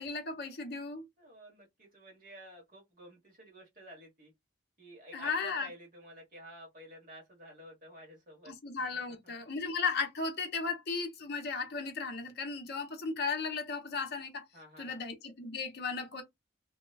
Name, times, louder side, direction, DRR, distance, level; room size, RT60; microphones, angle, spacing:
voice 1, 0.0-1.1 5.1-5.7 8.5-14.4 14.8-16.2, left 4 dB, 50° left, 0.7 m, -35 dB
voice 2, 1.2-4.3 4.8-8.5 8.9-9.6 14.5-15.0, right 1 dB, 40° right, 1.4 m, -52 dB
2.9 x 2.2 x 2.4 m
head